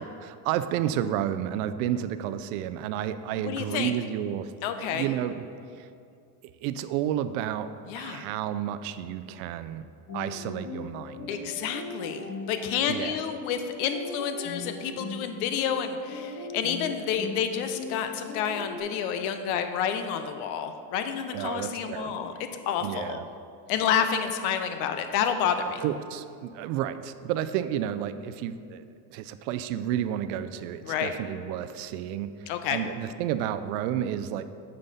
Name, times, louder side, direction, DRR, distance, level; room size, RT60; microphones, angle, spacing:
voice 1, 0.0-5.4 5.8-5.9 6.6-7.7 8.0-9.8 10.1-11.3 12.9-13.2 21.3-22.3 22.8-23.2 25.8-28.8 29.1-34.4, right 10 dB, 70° right, 11 dB, 0.5 m, -31 dB
voice 2, 3.4-3.9 4.6-5.1 7.9-8.3 11.3-23.2 23.7-25.8 30.8-31.1 32.5-32.8, left 8 dB, 75° left, 8 dB, 0.8 m, -29 dB
sound 1, 10.1-18.8, left 3 dB, 40° left, 1.9 m, -39 dB
9.0 x 5.4 x 4.1 m, 2.5 s
supercardioid pair, 135°, 45 cm